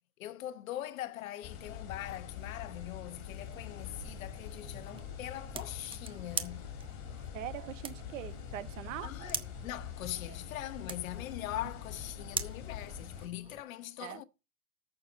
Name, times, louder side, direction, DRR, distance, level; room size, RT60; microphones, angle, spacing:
voice 1, 0.2-6.7 9.0-14.2, left 13 dB, 65° left, 1.1 m, -42 dB
sound 1, 1.4-13.3, left 8 dB, 40° left, 3.8 m, -44 dB
sound 2, 3.2-13.6, right 7 dB, 10° right, 0.8 m, -45 dB
voice 2, 7.3-9.3 10.3-10.4 14.0-14.2, right 13 dB, 60° right, 1.5 m, -42 dB
13.5 x 6.9 x 4.1 m
hypercardioid pair, 135°, 44 cm